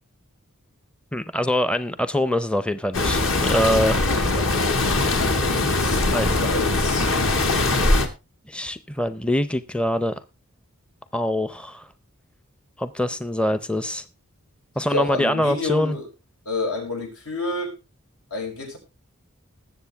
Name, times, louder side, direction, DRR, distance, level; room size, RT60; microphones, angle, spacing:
voice 1, 1.1-4.0 6.1-6.4 8.5-10.2 11.1-11.9 12.8-14.0 14.8-16.0, left 1 dB, 5° left, 0.5 m, -24 dB
sound 1, 2.9-8.1, left 2 dB, 65° left, 2.1 m, -21 dB
voice 2, 3.9-4.5 5.7-7.1 14.9-16.0 16.4-17.7 18.3-18.8, left 3 dB, 85° left, 6.3 m, -29 dB
20.0 x 7.5 x 3.4 m
head